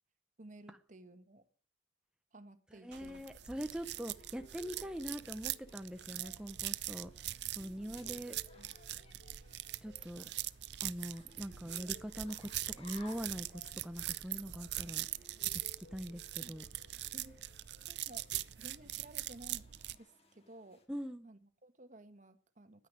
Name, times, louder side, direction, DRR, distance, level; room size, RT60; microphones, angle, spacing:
voice 1, 0.4-1.5 2.3-3.3 7.8-8.2 8.5-8.7 16.4-16.6 17.1-17.4 17.9-20.8 21.2-22.9, right 1 dB, 45° right, 10 dB, 1.4 m, -56 dB
voice 2, 2.8-8.3 9.8-10.3 10.8-15.1 15.4-16.6 20.9-21.3, equal, 5° right, 7 dB, 0.7 m, -43 dB
sound 1, 2.9-19.9, right 14 dB, 65° right, 0.6 m, -42 dB
sound 2, 3.7-20.9, left 3 dB, 35° left, 2.4 m, -65 dB
sound 3, 3.9-18.7, left 1 dB, 75° left, 7.9 m, -63 dB
10.5 x 9.6 x 9.9 m, 0.43 s
head